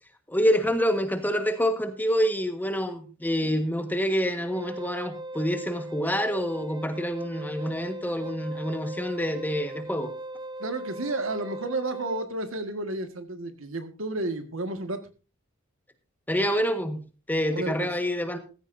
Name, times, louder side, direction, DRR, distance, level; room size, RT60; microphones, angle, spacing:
voice 1, 0.3-10.1 16.3-17.0 17.3-18.4, equal, 10° left, 7 dB, 1.4 m, -27 dB
Wind instrument woodwind instrument, 4.4-12.3, right 2 dB, 20° right, 0.7 m, -39 dB
voice 2, 10.6-15.0 17.5-17.9, right 2 dB, 65° right, 8 dB, 1.7 m, -32 dB
15.0 x 14.5 x 2.6 m, 0.33 s
head